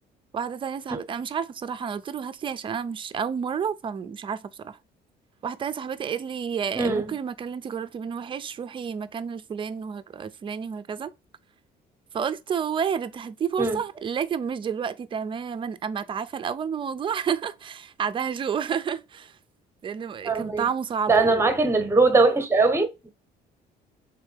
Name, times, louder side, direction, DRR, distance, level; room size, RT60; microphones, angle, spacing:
voice 1, 0.3-4.8 5.4-11.1 12.1-19.4 19.8-21.4, right 7 dB, 30° right, 0.4 m, -30 dB
voice 2, 6.8-7.1 13.6-13.8 20.2-20.6 21.1-23.1, right 3 dB, 15° right, 0.9 m, -21 dB
3.6 x 3.3 x 3.1 m
cardioid pair, 110°, 17 cm